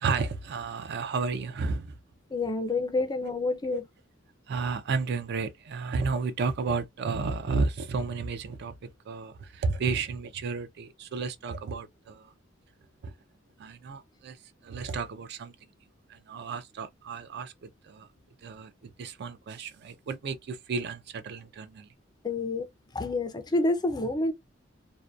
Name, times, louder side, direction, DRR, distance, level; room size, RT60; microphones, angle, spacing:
voice 1, 0.0-2.0 3.7-3.8 4.5-12.3 13.0-13.1 13.6-14.4 14.6-15.5 16.1-17.5 17.8-18.1 18.4-21.9, right 4 dB, 55° right, 0.4 m, -32 dB
voice 2, 2.3-3.8 22.2-22.7 22.9-24.3, left 2 dB, 20° left, 0.4 m, -28 dB
2.6 x 2.1 x 2.2 m
head